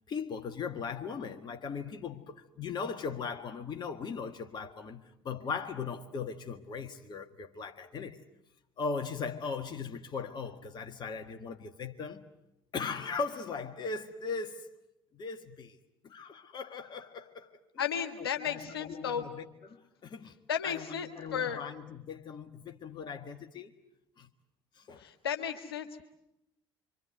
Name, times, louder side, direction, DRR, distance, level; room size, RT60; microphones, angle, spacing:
voice 1, 0.0-8.2 8.8-12.2 12.7-14.7 15.1-15.8 16.0-17.5 18.2-20.3 20.6-23.7 24.2-24.3 24.7-25.1, left 5 dB, 35° left, 1.7 m, -39 dB
voice 2, 17.8-19.3 20.5-21.6 25.0-25.9, left 8 dB, 75° left, 2.0 m, -34 dB
26.0 x 25.5 x 7.9 m
figure-of-eight pair, 60°, 13 cm